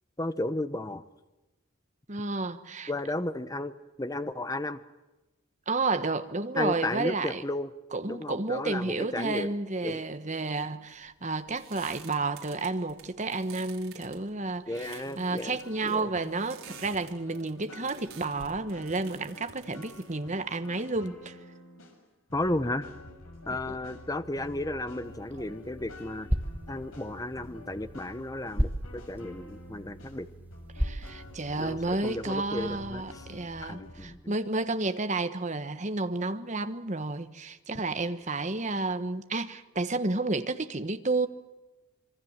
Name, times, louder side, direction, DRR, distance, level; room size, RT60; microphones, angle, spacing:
voice 1, 0.2-1.0 2.9-4.8 6.6-7.7 8.1-9.5 9.8-10.0 14.7-15.6 15.8-16.1 22.3-22.9 23.5-26.3 26.7-30.3 31.6-33.3 33.6-34.3, left 1 dB, 15° left, 0.8 m, -33 dB
voice 2, 2.1-2.9 5.7-7.4 7.9-21.4 23.6-23.8 30.8-41.3, right 3 dB, 35° right, 1.2 m, -31 dB
sound 1, 10.9-21.2, right 7 dB, 75° right, 4.4 m, -51 dB
sound 2, 14.7-22.0 22.3-34.1, left 1 dB, 80° left, 6.0 m, -48 dB
sound 3, 25.0-32.0, equal, 10° right, 1.5 m, -36 dB
26.0 x 24.0 x 7.3 m
head